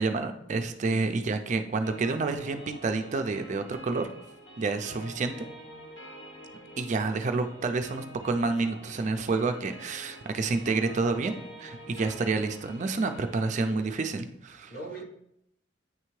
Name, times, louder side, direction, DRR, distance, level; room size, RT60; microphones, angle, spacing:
voice 1, 0.0-4.1 4.6-5.5 6.8-14.7, right 3 dB, 40° right, 7 dB, 0.4 m, -29 dB
sound 1, 1.8-13.8, equal, 80° left, 1.8 m, -47 dB
voice 2, 13.6-14.0 14.7-15.0, right 2 dB, 50° left, 0 dB, 1.1 m, -41 dB
8.9 x 3.3 x 3.2 m, 0.77 s
head